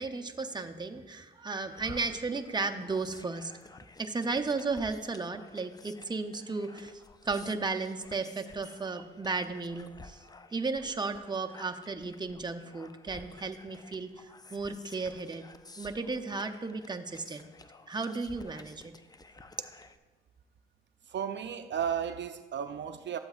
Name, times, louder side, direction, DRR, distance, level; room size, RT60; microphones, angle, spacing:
voice 1, 0.0-3.5 4.0-10.2 10.5-15.5 15.8-17.5 17.9-18.9, right 3 dB, 20° right, 5 dB, 0.6 m, -34 dB
sound 1, 1.8-20.0, left 3 dB, 20° left, 0.4 m, -53 dB
voice 2, 21.0-23.2, right 8 dB, 60° right, 9 dB, 0.4 m, -34 dB
12.0 x 7.7 x 2.4 m, 1.3 s
cardioid pair, 65°, 21 cm